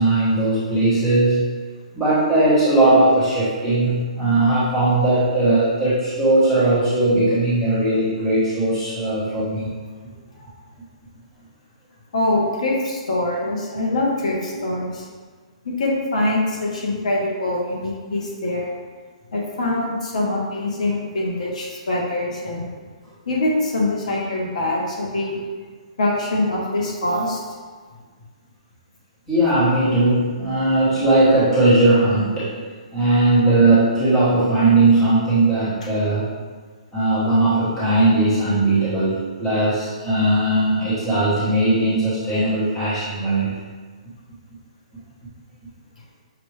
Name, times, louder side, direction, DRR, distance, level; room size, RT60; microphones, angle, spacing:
voice 1, 0.0-1.5 1.9-9.7 10.4-10.5 14.5-14.6 29.3-32.6 32.9-36.3 36.9-43.6, right 2 dB, 5° left, -13 dB, 1.2 m, -18 dB
voice 2, 12.1-15.0 15.6-18.7 19.3-22.6 23.3-25.4 26.0-27.4, left 2 dB, 70° left, -3 dB, 1.2 m, -23 dB
6.0 x 2.5 x 3.3 m, 1.5 s
hypercardioid pair, 180°, 4 cm